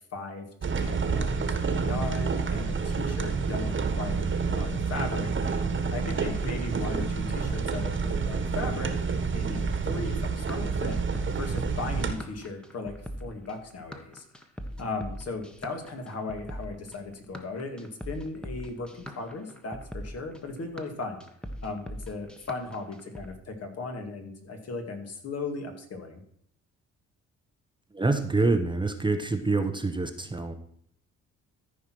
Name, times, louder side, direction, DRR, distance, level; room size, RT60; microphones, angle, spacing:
voice 1, 0.1-5.6 5.9-8.9 9.3-11.0 11.4-12.9 13.2-14.2 14.8-21.2 21.6-26.2, left 3 dB, 55° left, 4 dB, 2.3 m, -37 dB
sound 1, 0.6-12.1, right 5 dB, 40° right, 1.5 m, -29 dB
sound 2, 9.6-23.3, equal, 5° left, 1.2 m, -41 dB
voice 2, 27.9-30.5, right 3 dB, 15° right, 7 dB, 0.9 m, -26 dB
14.0 x 4.7 x 6.0 m, 0.65 s
cardioid pair, 90°, 30 cm